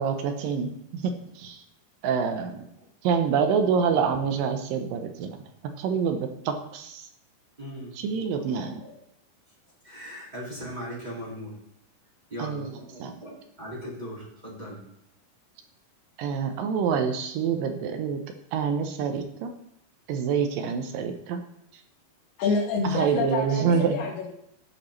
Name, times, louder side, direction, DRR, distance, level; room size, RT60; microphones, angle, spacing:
voice 1, 0.0-1.6 2.0-2.7 3.0-5.4 5.8-7.1 8.0-8.8 12.4-12.7 13.0-13.1 16.2-18.2 18.5-19.5 20.1-21.4 22.8-24.0, right 6 dB, 75° right, 6 dB, 2.2 m, -26 dB
voice 2, 7.6-7.9 8.4-9.0 9.8-11.6 12.3-14.8, equal, 25° right, -6 dB, 0.9 m, -39 dB
voice 3, 22.4-24.3, left 4 dB, 85° left, -6 dB, 3.3 m, -27 dB
15.5 x 5.1 x 3.1 m, 0.73 s
omnidirectional pair, 4.4 m